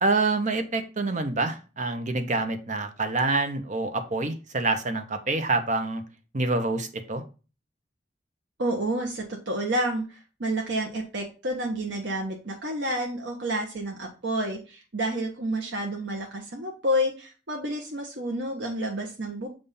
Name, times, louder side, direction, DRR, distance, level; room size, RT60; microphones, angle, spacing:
voice 1, 0.0-6.0 6.3-7.2, right 3 dB, 40° right, 7 dB, 0.9 m, -26 dB
voice 2, 8.6-19.5, right 1 dB, 70° right, 1 dB, 1.0 m, -29 dB
7.0 x 2.6 x 5.5 m, 0.33 s
head